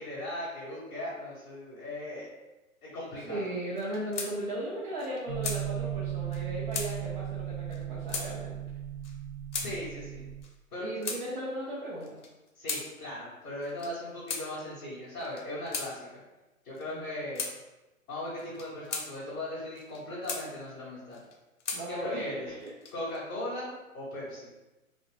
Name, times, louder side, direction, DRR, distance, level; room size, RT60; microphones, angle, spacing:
voice 1, 0.0-2.3 2.8-3.5 9.6-10.2 10.7-11.1 12.6-16.2 16.6-17.4 18.1-21.2 21.9-22.5 22.9-24.5, left 1 dB, 15° left, -11 dB, 0.6 m, -38 dB
voice 2, 3.2-8.5 10.8-12.2 16.9-17.1 21.7-22.6, right 1 dB, 35° right, -7 dB, 0.5 m, -36 dB
sound 1, 3.8-4.3 4.6-4.7 5.0-5.6 6.3-6.4 6.7-6.9 7.7-7.8 8.1-8.3 9.0-9.1 9.5-9.7 10.4-11.2 12.0-12.8 13.6-13.9 14.3-14.4 15.2-15.9 16.7-16.9 17.3-17.5 18.4-19.1 19.7-20.4 21.1-21.8 22.6-23.2, left 4 dB, 60° left, 0.6 m, -36 dB
sound 2, 5.3-10.4, right 11 dB, 60° right, 1.0 m, -36 dB
2.6 x 2.1 x 2.9 m, 1.0 s
figure-of-eight pair, 130°, 42 cm